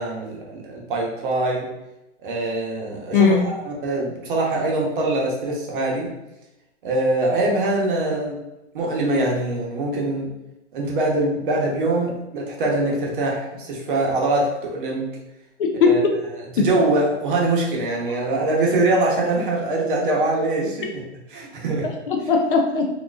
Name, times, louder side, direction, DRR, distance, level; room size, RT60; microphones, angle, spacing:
voice 1, 0.0-1.7 2.2-6.1 6.8-8.4 8.7-10.3 10.7-15.0 15.8-16.0 16.6-20.9 21.3-21.9, right 2 dB, 45° right, -2 dB, 0.9 m, -23 dB
voice 2, 3.1-3.4 15.6-16.1 16.6-16.7 21.8-22.9, left 5 dB, 50° left, 3 dB, 0.5 m, -19 dB
3.9 x 2.7 x 2.3 m, 0.94 s
hypercardioid pair, 170°, 36 cm